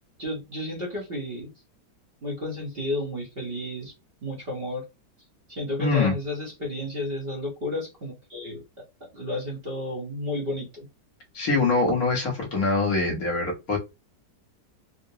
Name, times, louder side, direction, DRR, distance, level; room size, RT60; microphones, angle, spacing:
voice 1, 0.2-1.5 2.2-3.9 4.2-4.8 5.5-8.6 9.0-10.8, left 1 dB, 40° right, -3 dB, 1.0 m, -32 dB
voice 2, 5.8-6.1 11.3-13.8, left 3 dB, 55° left, 0 dB, 1.4 m, -23 dB
3.9 x 2.1 x 2.7 m, 0.25 s
omnidirectional pair, 1.9 m